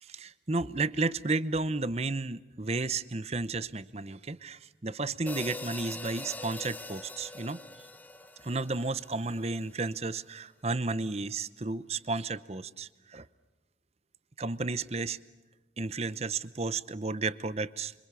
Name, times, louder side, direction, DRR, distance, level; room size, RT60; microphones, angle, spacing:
voice 1, 0.0-7.6 8.4-13.3 14.4-15.2 15.8-17.9, right 3 dB, 35° right, 15 dB, 0.8 m, -33 dB
sound 1, 5.3-9.6, left 2 dB, 10° left, 0.9 m, -43 dB
27.5 x 25.0 x 6.9 m, 1.1 s
head